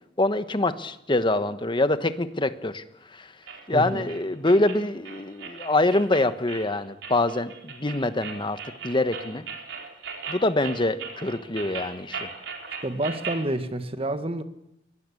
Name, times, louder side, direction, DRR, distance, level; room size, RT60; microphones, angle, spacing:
voice 1, 0.2-3.3 3.7-9.4 10.3-12.3, left 2 dB, 25° left, 11 dB, 1.2 m, -25 dB
sound 1, 3.5-13.5, right 5 dB, 80° right, 4.2 m, -38 dB
voice 2, 3.7-4.1 12.8-14.4, right 1 dB, 30° right, 9 dB, 1.7 m, -28 dB
22.5 x 19.0 x 8.5 m, 0.77 s
head